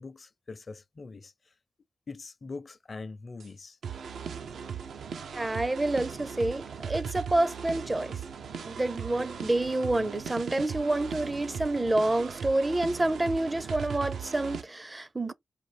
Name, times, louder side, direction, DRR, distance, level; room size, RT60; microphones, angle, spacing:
voice 1, 0.0-1.3 2.1-3.8, left 3 dB, 50° left, 0.6 m, -42 dB
sound 1, 3.4-3.5 3.8-14.6, right 7 dB, 80° right, 0.6 m, -38 dB
voice 2, 5.3-8.2 8.7-15.3, right 2 dB, 25° right, 0.5 m, -28 dB
4.4 x 2.5 x 3.4 m
cardioid pair, 65°, 0 cm